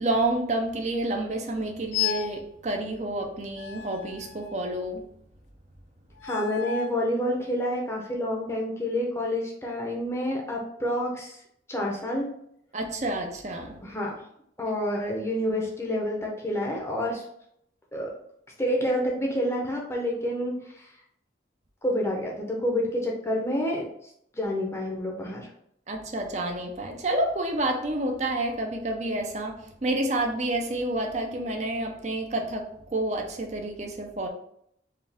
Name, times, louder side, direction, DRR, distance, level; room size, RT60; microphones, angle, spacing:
voice 1, 0.0-5.0 12.7-13.7 25.9-34.3, right 1 dB, 40° right, 2 dB, 0.6 m, -29 dB
sound 1, 1.9-2.4 3.6-4.8 6.2-7.0, left 9 dB, 80° left, 0.3 m, -33 dB
voice 2, 6.2-11.4 11.7-12.3 13.8-14.2 14.6-17.2 17.9-18.2 18.6-20.9 21.8-23.9 24.3-25.5, left 1 dB, 15° left, -1 dB, 0.7 m, -28 dB
4.7 x 2.5 x 3.4 m, 0.72 s
head